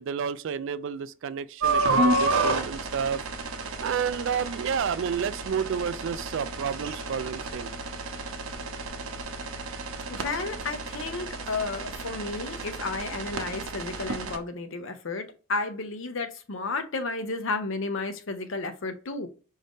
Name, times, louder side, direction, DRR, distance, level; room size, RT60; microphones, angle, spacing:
voice 1, 0.0-3.2 3.8-7.8, right 7 dB, 55° right, 0.3 m, -30 dB
sound 1, 1.6-14.4, right 2 dB, 75° right, 0.7 m, -30 dB
voice 2, 10.1-19.3, left 3 dB, 60° left, 0.6 m, -32 dB
4.9 x 2.7 x 3.5 m
head